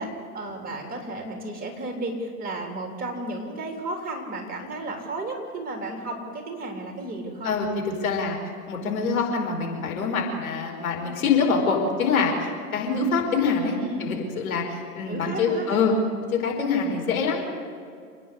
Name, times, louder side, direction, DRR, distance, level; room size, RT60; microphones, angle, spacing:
voice 1, 0.0-7.5 13.7-14.2 15.1-15.8, right 2 dB, 20° right, 3 dB, 3.7 m, -33 dB
voice 2, 7.4-8.4 8.7-15.9 16.4-17.6, left 5 dB, 65° left, 1 dB, 5.2 m, -25 dB
28.5 x 10.0 x 9.9 m, 2.3 s
figure-of-eight pair, 105°, 45 cm